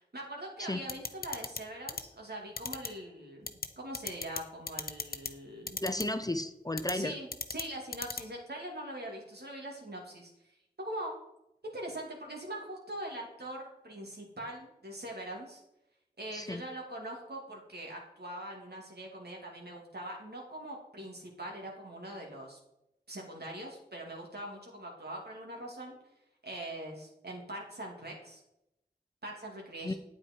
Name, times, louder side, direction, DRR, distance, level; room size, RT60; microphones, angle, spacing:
voice 1, 0.0-5.8 6.9-10.3 10.8-11.1 11.6-15.6 16.2-22.6 23.1-26.0 26.4-28.4 29.2-29.9, right 1 dB, 75° right, -1 dB, 2.8 m, -42 dB
sound 1, 0.9-1.6 1.9-2.0 2.6-2.9 3.5-3.7 3.9-4.4 4.7-5.3 5.7-6.0 6.8-6.9 7.3-7.6 7.9-8.2, left 4 dB, 65° left, 0.7 m, -35 dB
voice 2, 5.8-7.1 16.3-16.6 29.8-29.9, left 1 dB, 20° left, 9 dB, 0.6 m, -33 dB
8.9 x 8.9 x 4.6 m, 0.84 s
wide cardioid pair, 55°, 17 cm